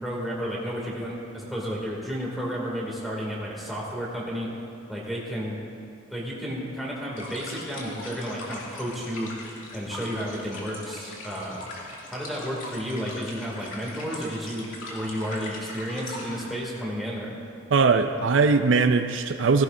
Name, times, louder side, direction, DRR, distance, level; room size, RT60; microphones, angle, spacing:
voice 1, 0.0-4.5 4.9-5.6 6.1-9.3 9.7-11.7 12.1-17.4, equal, ahead, -5 dB, 2.3 m, -32 dB
sound 1, 7.1-16.4, left 2 dB, 85° left, 2.5 m, -40 dB
voice 2, 17.7-19.6, right 4 dB, 70° right, 8 dB, 0.4 m, -20 dB
16.0 x 16.0 x 2.6 m, 2.5 s
head